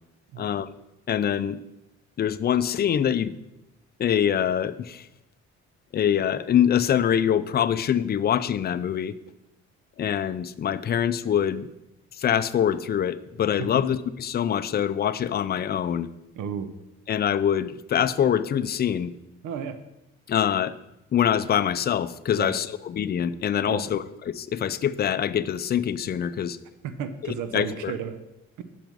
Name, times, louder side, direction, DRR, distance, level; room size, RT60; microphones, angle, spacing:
voice 1, 0.4-0.7 1.1-1.6 2.2-3.3 4.0-5.1 5.9-9.2 10.0-11.7 12.2-16.1 17.1-19.1 20.3-20.8 21.1-26.6 27.2-27.9, left 9 dB, 35° left, 13 dB, 0.4 m, -24 dB
voice 2, 16.4-16.7 19.4-19.8 22.4-22.6 23.7-23.9 26.8-28.2 28.6-28.7, right 8 dB, 85° right, 11 dB, 0.7 m, -33 dB
6.1 x 6.0 x 5.2 m, 0.91 s
cardioid pair, 90°, 30 cm